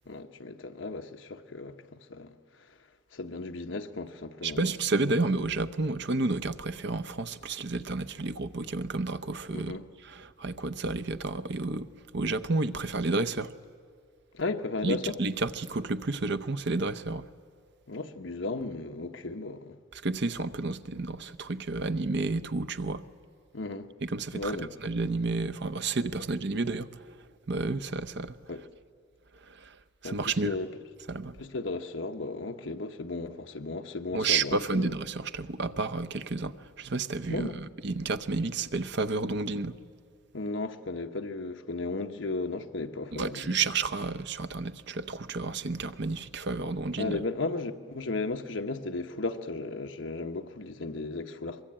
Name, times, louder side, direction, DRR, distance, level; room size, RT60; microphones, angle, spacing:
voice 1, 0.1-2.3 3.1-4.8 9.5-9.8 14.3-15.1 17.9-19.8 23.5-23.9 24.3-24.7 28.5-28.6 30.0-30.7 31.4-34.9 37.3-37.6 40.3-43.6 47.0-51.6, left 3 dB, 65° left, 1.1 m, -35 dB
voice 2, 4.4-9.8 10.0-11.9 12.1-13.5 14.8-17.3 19.9-23.0 24.0-27.1 27.5-28.3 29.5-29.8 30.0-30.5 31.1-31.4 34.1-39.8 43.1-47.2, right 3 dB, 60° right, 0.7 m, -31 dB
23.5 x 22.5 x 8.8 m
head